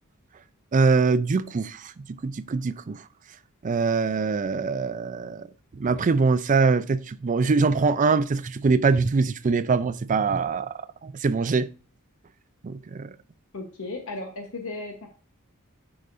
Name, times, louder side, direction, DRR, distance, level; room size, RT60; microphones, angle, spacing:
voice 1, 0.7-1.8 2.2-3.0 3.6-5.4 5.8-10.7 11.0-11.7 12.6-13.1, right 4 dB, 35° right, 0.4 m, -23 dB
voice 2, 13.5-15.1, left 2 dB, 65° left, 1.1 m, -35 dB
10.5 x 4.9 x 2.6 m
head